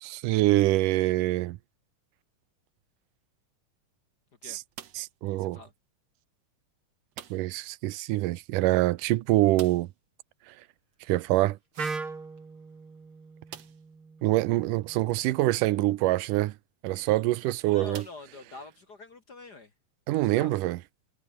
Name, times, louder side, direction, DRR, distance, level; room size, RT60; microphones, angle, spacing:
voice 1, 0.0-1.6 4.4-4.6 5.0-5.6 7.3-9.9 10.5-10.6 11.1-11.6 14.2-16.5 16.8-18.0 20.1-20.8, right 17 dB, 90° right, 2.4 m, -25 dB
sound 1, 4.7-5.3 7.1-7.7 7.9-8.0 8.4-8.5 9.5-10.1 11.8-11.9 12.6-12.7 13.5-14.0 14.7-14.8 16.8-17.0 17.9-18.8, right 10 dB, 60° right, 2.7 m, -47 dB
voice 2, 5.4-5.7 17.7-19.7 20.1-20.6, left 3 dB, 45° left, 1.5 m, -45 dB
Wind instrument woodwind instrument, 11.8-15.6, right 4 dB, 40° right, 4.7 m, -40 dB
omnidirectional pair, 3.6 m